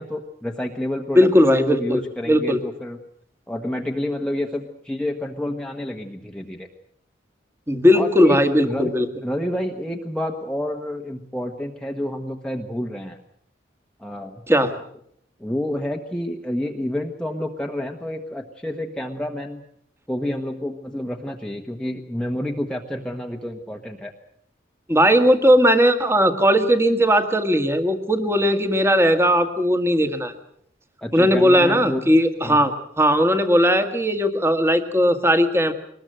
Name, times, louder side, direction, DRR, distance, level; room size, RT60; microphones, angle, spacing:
voice 1, 0.0-3.0 3.5-6.7 7.9-8.9 9.2-13.2 14.0-14.4 15.4-19.6 20.1-24.1 31.0-32.1 32.4-32.7, left 1 dB, 5° left, 2 dB, 1.1 m, -29 dB
voice 2, 1.1-2.0 2.3-2.6 7.7-9.1 14.5-14.7 24.9-30.3 31.1-35.7, equal, 15° right, 8 dB, 1.7 m, -18 dB
23.0 x 20.0 x 7.8 m, 0.68 s
head